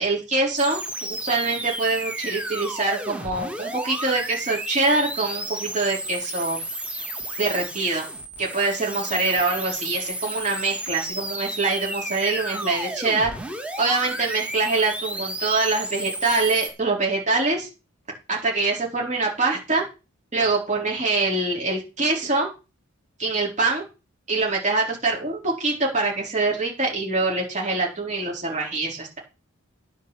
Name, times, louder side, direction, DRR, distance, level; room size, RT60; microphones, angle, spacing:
voice 1, 0.0-6.6 7.4-8.1 8.4-13.3 13.8-17.7 18.3-19.8 20.3-22.5 23.2-23.8 24.3-29.2, right 3 dB, 35° right, -2 dB, 4.2 m, -24 dB
sound 1, 0.6-16.7, right 1 dB, 5° right, 1.8 m, -32 dB
10.0 x 5.7 x 7.2 m, 0.30 s
head